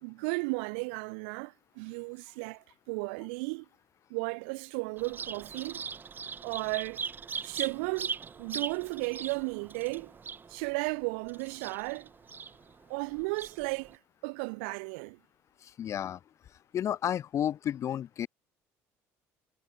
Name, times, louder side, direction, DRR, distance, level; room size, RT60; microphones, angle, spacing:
voice 1, 0.0-3.6 4.1-5.8 6.4-7.0 7.4-10.1 10.5-12.1 12.9-15.2, right 33 dB, 90° right, 1.6 m, -35 dB
Bird vocalization bird call bird song, 5.0-13.9, right 6 dB, 30° right, 2.0 m, -41 dB
voice 2, 15.6-16.2 16.7-18.3, left 10 dB, 50° left, 2.9 m, -32 dB
supercardioid pair, 95°, 6 cm